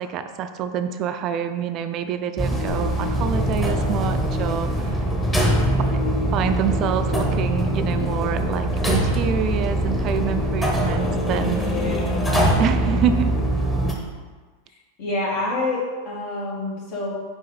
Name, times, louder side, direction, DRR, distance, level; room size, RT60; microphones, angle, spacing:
voice 1, 0.0-5.0 5.9-6.0 6.3-11.6 12.6-13.3, right 8 dB, 40° right, 9 dB, 0.4 m, -26 dB
sound 1, 2.4-13.9, right 1 dB, 10° left, 1.2 m, -22 dB
voice 2, 5.3-5.9 11.6-12.3 15.0-17.1, left 2 dB, 55° left, -4 dB, 1.8 m, -28 dB
5.3 x 5.0 x 3.9 m, 1.4 s
figure-of-eight pair, 90°, 0 cm